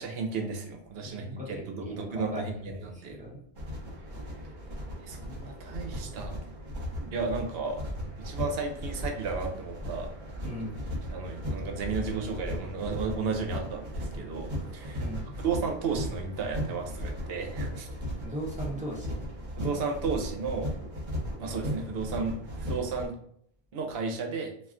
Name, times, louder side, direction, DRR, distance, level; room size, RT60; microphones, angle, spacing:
voice 1, 0.0-3.2 5.0-6.4 7.1-7.8 8.2-10.2 11.1-15.1 15.4-17.9 19.6-20.7 21.4-23.2 23.7-24.5, right 4 dB, 70° right, 4 dB, 0.8 m, -33 dB
voice 2, 1.1-3.4 10.4-10.8 15.0-15.3 18.2-19.2, equal, 10° right, -3 dB, 0.6 m, -38 dB
sound 1, 3.5-23.1, equal, 50° right, 1.0 m, -36 dB
2.3 x 2.3 x 3.5 m, 0.68 s
omnidirectional pair, 1.1 m